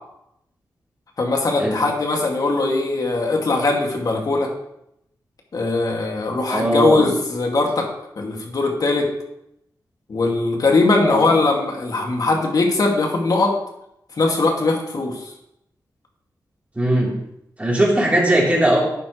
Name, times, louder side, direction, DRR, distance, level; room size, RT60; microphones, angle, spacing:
voice 1, 1.2-4.5 5.5-7.9 8.2-9.1 10.1-13.5 14.2-15.2, left 3 dB, 60° left, 1 dB, 2.4 m, -20 dB
voice 2, 6.5-7.1 11.0-11.4 16.8-17.1 17.6-18.8, right 1 dB, 20° right, -4 dB, 3.9 m, -19 dB
12.0 x 9.1 x 3.3 m, 0.79 s
wide cardioid pair, 85°, 7 cm